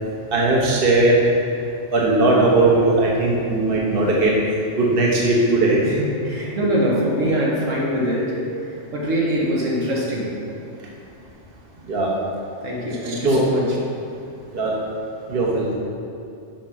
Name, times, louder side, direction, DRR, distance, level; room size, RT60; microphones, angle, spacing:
voice 1, 0.3-1.2 1.9-4.3 4.8-5.8 11.9-12.1 13.1-13.5 14.5-14.7 15.3-15.7, right 2 dB, 50° right, -3 dB, 1.3 m, -18 dB
voice 2, 5.8-10.4 12.6-13.8, equal, 80° right, -3 dB, 1.7 m, -23 dB
7.4 x 5.1 x 5.8 m, 2.6 s
omnidirectional pair, 1.3 m